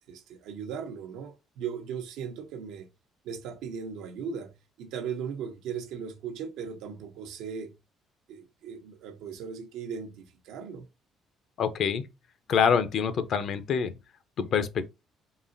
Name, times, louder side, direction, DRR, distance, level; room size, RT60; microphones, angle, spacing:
voice 1, 0.1-2.9 3.2-7.7 8.3-10.9, right 7 dB, 85° right, 0.8 m, -38 dB
voice 2, 11.6-12.1 12.5-13.9 14.4-14.8, left 7 dB, 55° left, 0.6 m, -25 dB
4.0 x 3.8 x 2.5 m
cardioid pair, 125°, 0 cm